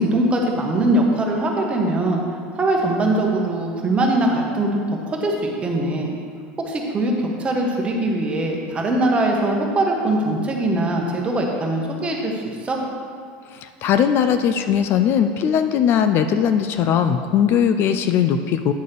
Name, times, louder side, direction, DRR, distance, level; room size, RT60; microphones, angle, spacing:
voice 1, 0.0-2.2 2.6-5.3 5.6-6.1 6.6-12.8, right 1 dB, 20° right, 0 dB, 1.3 m, -21 dB
voice 2, 13.5-18.7, left 8 dB, 45° left, 9 dB, 0.4 m, -19 dB
9.3 x 4.0 x 6.7 m, 2.2 s
supercardioid pair, 125°, 5 cm